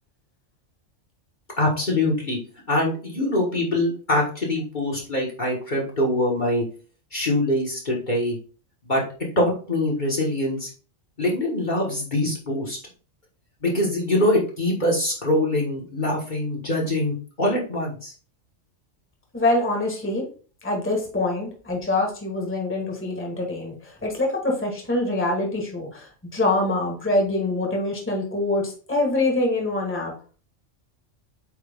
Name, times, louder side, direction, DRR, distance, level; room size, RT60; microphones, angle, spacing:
voice 1, 1.6-2.4 2.7-6.6 7.1-8.4 8.8-9.0 9.3-10.7 11.2-12.8 13.6-18.1, left 1 dB, 40° left, -3 dB, 1.6 m, -23 dB
voice 2, 19.3-20.2 20.6-30.1, left 2 dB, 10° left, 0 dB, 1.4 m, -25 dB
8.2 x 3.2 x 3.6 m, 0.39 s
omnidirectional pair, 1.3 m